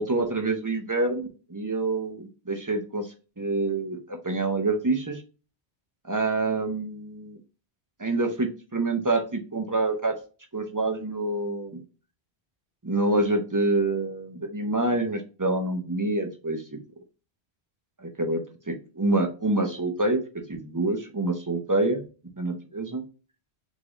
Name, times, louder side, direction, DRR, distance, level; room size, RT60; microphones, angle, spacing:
voice 1, 0.0-3.1 3.4-5.2 6.1-7.4 8.0-10.1 10.5-11.8 12.8-16.8 18.0-18.4 18.7-20.2 20.5-22.0 22.4-23.0, right 2 dB, 20° right, 5 dB, 0.6 m, -26 dB
3.6 x 3.3 x 3.9 m, 0.34 s
omnidirectional pair, 1.1 m